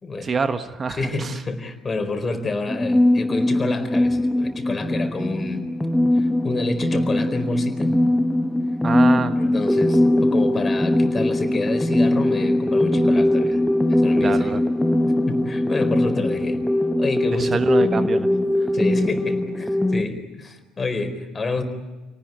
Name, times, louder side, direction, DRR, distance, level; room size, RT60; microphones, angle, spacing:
voice 1, 0.2-1.4 8.8-9.3 14.2-14.6 17.4-18.3, right 5 dB, 35° right, 10 dB, 1.4 m, -25 dB
voice 2, 0.9-5.6 6.1-7.9 9.4-13.6 14.0-14.6 15.3-16.6 17.0-17.7 18.7-21.6, left 3 dB, 30° left, 7 dB, 4.4 m, -28 dB
sound 1, 2.7-20.0, left 1 dB, 5° left, 1.2 m, -21 dB
28.5 x 19.0 x 9.4 m, 1.2 s
hypercardioid pair, 55°, 0 cm